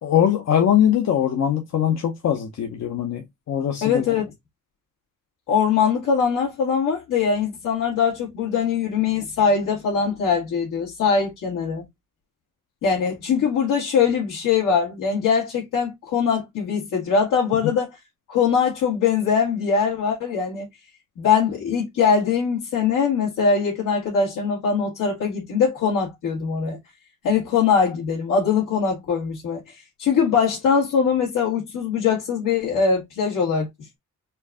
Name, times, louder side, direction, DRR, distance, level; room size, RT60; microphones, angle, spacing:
voice 1, 0.0-4.0, left 9 dB, 55° left, 0.7 m, -21 dB
voice 2, 3.8-4.3 5.5-11.8 12.8-17.9 18.3-20.7 21.2-26.8 27.2-29.6 30.0-33.7, left 6 dB, 90° left, 2.0 m, -22 dB
4.4 x 2.6 x 3.5 m
cardioid pair, 145°, 31 cm